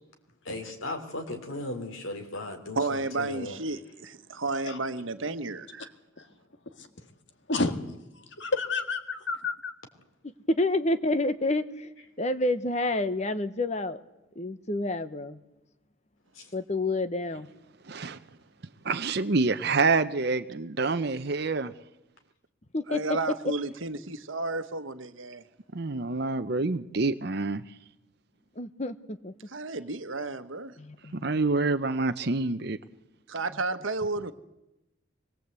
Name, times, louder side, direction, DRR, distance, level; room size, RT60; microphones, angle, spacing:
voice 1, 0.4-3.6 16.3-16.4, left 2 dB, 75° left, 3.5 m, -36 dB
voice 2, 2.7-5.9 22.9-25.4 29.5-30.7 33.3-34.3, right 3 dB, 70° right, 1.3 m, -32 dB
voice 3, 7.5-7.9 8.4-9.7, left 3 dB, 60° left, 1.9 m, -30 dB
voice 4, 10.6-11.9 12.2-14.0 14.4-15.4 16.5-17.5 22.7-23.0 28.6-29.3 30.8-31.4, left 2 dB, 35° left, 1.0 m, -29 dB
voice 5, 17.9-18.2 18.8-21.7 25.7-27.6 31.1-32.8, right 3 dB, 50° right, 0.8 m, -27 dB
24.5 x 21.0 x 8.2 m
head